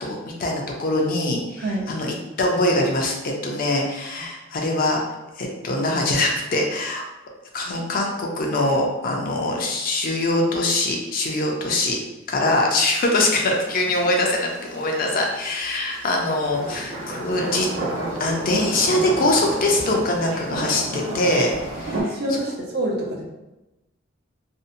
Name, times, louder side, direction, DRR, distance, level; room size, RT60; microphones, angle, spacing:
voice 1, 0.0-5.0 5.4-7.0 7.5-12.0 12.3-17.7 18.2-21.9, left 2 dB, 45° left, 0 dB, 0.4 m, -23 dB
sound 1, 13.4-22.0, right 1 dB, 90° right, 0.7 m, -32 dB
voice 2, 21.9-23.2, right 1 dB, 55° right, -2 dB, 0.6 m, -26 dB
2.6 x 2.0 x 2.5 m, 1.0 s
head